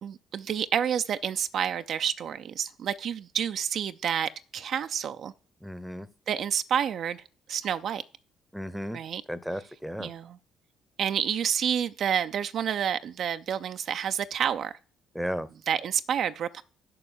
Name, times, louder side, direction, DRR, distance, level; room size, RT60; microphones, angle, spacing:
voice 1, 0.0-5.3 6.3-7.2 7.5-8.0 8.9-9.2 10.0-10.4 11.0-14.7 15.7-16.6, right 8 dB, 60° right, 0.4 m, -29 dB
voice 2, 5.6-6.1 8.5-9.0 9.3-10.1 15.1-15.5, equal, ahead, 0.8 m, -34 dB
6.9 x 5.4 x 7.3 m
hypercardioid pair, 50°, 0 cm